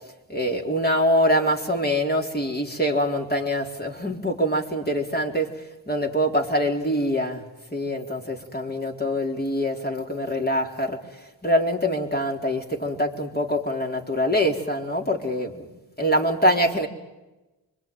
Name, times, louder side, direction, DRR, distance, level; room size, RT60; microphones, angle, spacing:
voice 1, 0.3-5.5 5.9-7.4 7.7-11.0 11.4-15.6 16.0-16.9, equal, 20° left, 1 dB, 4.1 m, -24 dB
25.5 x 23.0 x 9.4 m, 1.1 s
cardioid pair, 45°, 43 cm